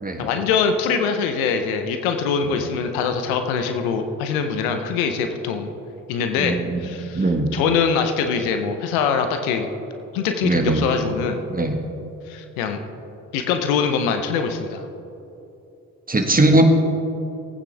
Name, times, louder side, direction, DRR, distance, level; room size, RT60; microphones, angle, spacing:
voice 1, 0.2-5.7 6.1-9.7 10.1-11.4 12.3-12.8 13.3-14.8, left 6 dB, 85° left, 7 dB, 0.9 m, -23 dB
voice 2, 6.4-6.8 7.1-7.5 10.4-10.8 11.5-11.7 16.1-16.6, right 2 dB, 20° right, 4 dB, 1.6 m, -20 dB
17.0 x 9.2 x 3.4 m, 2.8 s
hypercardioid pair, 45°, 41 cm